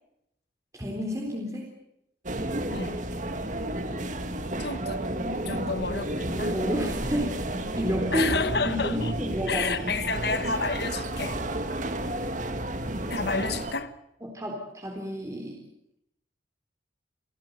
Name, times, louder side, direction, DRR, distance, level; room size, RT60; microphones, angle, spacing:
voice 1, 0.7-1.7 5.2-5.6 6.4-7.3 7.7-8.3 8.7-10.0 14.2-15.6, equal, 15° right, 3.7 m, -31 dB
sound 1, 2.3-13.7, right 1 dB, 40° right, 1.9 m, -31 dB
voice 2, 4.6-5.0 5.5-6.5 8.1-9.1 9.5-11.4 13.1-13.9, left 4 dB, 60° left, 1.3 m, -30 dB
28.0 x 16.5 x 8.1 m
head